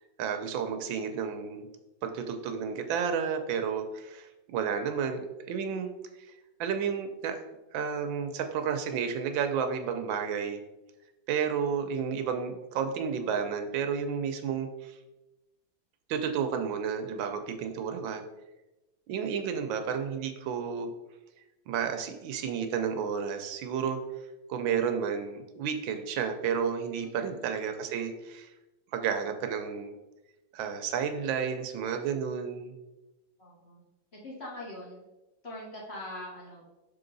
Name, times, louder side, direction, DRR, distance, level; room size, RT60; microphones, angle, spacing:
voice 1, 0.2-1.7 2.0-5.9 6.6-7.4 7.7-10.6 11.3-15.0 16.1-18.2 19.1-20.9 21.7-24.0 24.5-28.5 28.9-29.9 30.5-32.7, right 7 dB, 80° right, 6 dB, 1.4 m, -31 dB
voice 2, 27.0-27.5 33.4-33.8 34.1-35.0 35.4-36.7, left 1 dB, 35° left, -5 dB, 1.5 m, -43 dB
6.3 x 3.8 x 3.9 m, 1.0 s
omnidirectional pair, 2.1 m